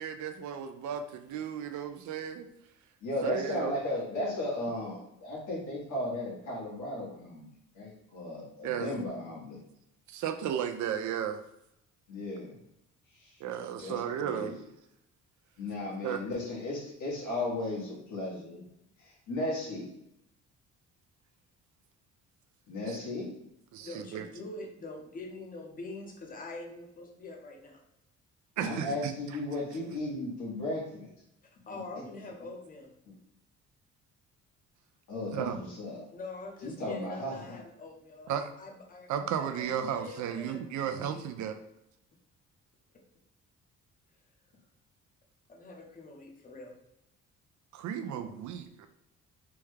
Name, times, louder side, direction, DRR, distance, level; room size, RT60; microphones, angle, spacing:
voice 1, 0.0-2.5 3.2-3.7 8.6-8.9 10.1-11.4 13.4-14.5 16.0-16.2 22.9-23.0 23.7-24.3 28.6-29.1 35.3-35.7 38.3-38.5 39.1-41.6 47.7-48.9, right 9 dB, 70° right, 8 dB, 0.5 m, -34 dB
voice 2, 3.0-7.5 7.7-9.6 12.1-12.5 13.2-13.4 13.8-14.5 15.6-18.6 19.0-19.9 22.7-23.3 28.6-31.1 31.7-31.8 35.1-36.0 36.6-37.6, left 1 dB, 80° left, -4 dB, 1.4 m, -35 dB
voice 3, 23.8-27.8 31.7-32.9 36.1-38.3 38.6-41.3 45.5-46.7, left 2 dB, 30° left, 1 dB, 0.7 m, -44 dB
3.5 x 2.2 x 3.2 m, 0.80 s
cardioid pair, 90°, 30 cm